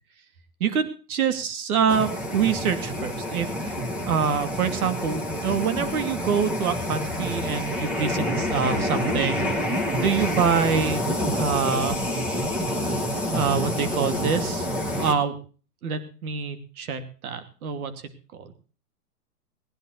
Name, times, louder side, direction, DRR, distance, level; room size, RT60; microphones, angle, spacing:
voice 1, 0.6-3.7 4.1-9.4 9.9-11.0 11.4-12.0 13.3-14.7 15.0-15.4 15.8-17.9, right 6 dB, 65° right, 10 dB, 2.7 m, -25 dB
sound 1, 1.9-15.1, equal, 5° right, 0.6 m, -28 dB
20.0 x 10.5 x 4.1 m, 0.38 s
hypercardioid pair, 155°, 47 cm